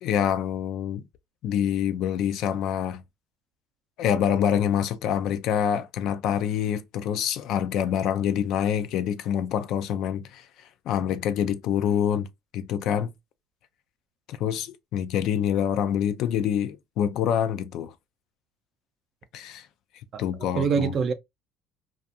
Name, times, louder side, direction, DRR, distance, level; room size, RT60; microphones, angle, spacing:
voice 1, 0.0-1.0 1.4-3.0 4.0-10.4 10.9-12.3 12.5-13.1 14.3-17.9 19.3-19.7 20.2-20.9, left 9 dB, 65° left, 0.4 m, -26 dB
voice 2, 20.1-21.1, right 6 dB, 50° right, 0.5 m, -25 dB
2.4 x 2.3 x 2.6 m
supercardioid pair, 95°, 0 cm